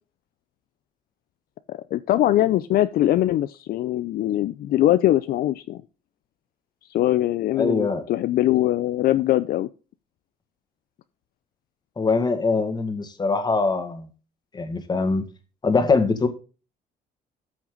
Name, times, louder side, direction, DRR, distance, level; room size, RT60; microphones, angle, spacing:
voice 1, 1.7-5.8 6.9-9.7, left 14 dB, 65° left, 13 dB, 0.5 m, -22 dB
voice 2, 7.6-8.0 12.0-14.1 14.5-15.2 15.6-16.3, left 4 dB, 25° left, 7 dB, 2.0 m, -22 dB
13.5 x 6.0 x 3.9 m, 0.33 s
cardioid pair, 110°, 17 cm